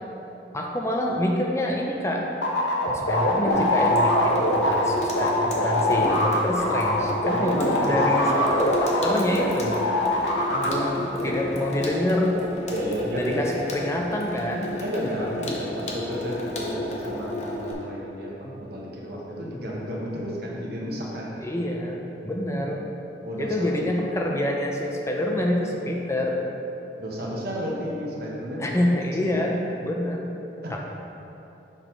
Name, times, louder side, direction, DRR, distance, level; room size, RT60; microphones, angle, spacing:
voice 1, 0.5-2.3 3.1-8.3 8.6-9.7 10.7-12.4 13.2-14.7 21.4-22.9 23.4-26.4 28.6-30.3 30.7-30.8, left 1 dB, 15° left, 0 dB, 0.4 m, -26 dB
sound 1, 2.4-9.5 9.7-10.7, left 1 dB, 75° left, 1.0 m, -23 dB
Water tap faucet / Sink (filling or washing), 3.5-17.7, left 1 dB, 40° left, 0.8 m, -33 dB
voice 2, 7.3-8.4 9.2-9.4 10.5-10.9 11.2-11.4 12.7-13.4 14.8-21.3 23.2-23.7 27.0-28.8 29.2-29.4 30.6-30.8, equal, 60° right, -4 dB, 1.2 m, -32 dB
6.7 x 4.1 x 4.4 m, 3.0 s
head